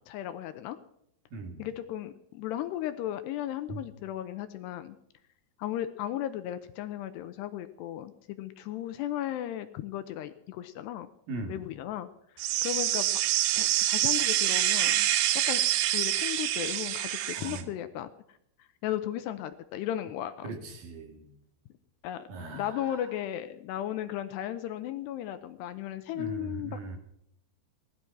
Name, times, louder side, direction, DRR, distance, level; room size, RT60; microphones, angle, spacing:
voice 1, 0.1-0.8 1.6-5.0 5.6-11.1 11.5-12.1 12.6-13.1 13.6-15.1 15.5-15.6 15.9-18.1 18.8-20.6 22.0-26.8, left 12 dB, 80° left, 10 dB, 2.7 m, -35 dB
voice 2, 1.3-1.6 3.7-3.8 11.3-11.7 17.3-17.7 20.4-21.3 22.3-23.1 26.2-27.0, right 3 dB, 55° right, 4 dB, 3.5 m, -39 dB
sound 1, 12.4-17.6, right 13 dB, 75° right, 2.9 m, -26 dB
19.0 x 12.5 x 6.0 m, 0.73 s
omnidirectional pair, 5.2 m